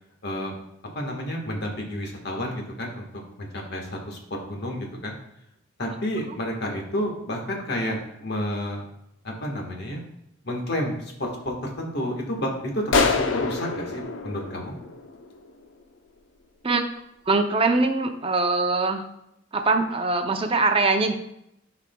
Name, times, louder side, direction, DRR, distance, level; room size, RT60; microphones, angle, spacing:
voice 1, 0.2-0.5 0.9-3.1 3.4-4.2 4.5-5.2 5.8-8.9 9.2-10.0 10.4-14.7, equal, 60° left, 1 dB, 1.5 m, -30 dB
sound 1, 12.9-15.5, left 4 dB, 85° left, 0.7 m, -26 dB
voice 2, 17.3-19.0 19.5-21.1, right 3 dB, 30° right, 5 dB, 0.6 m, -22 dB
12.5 x 4.9 x 2.3 m, 0.79 s
head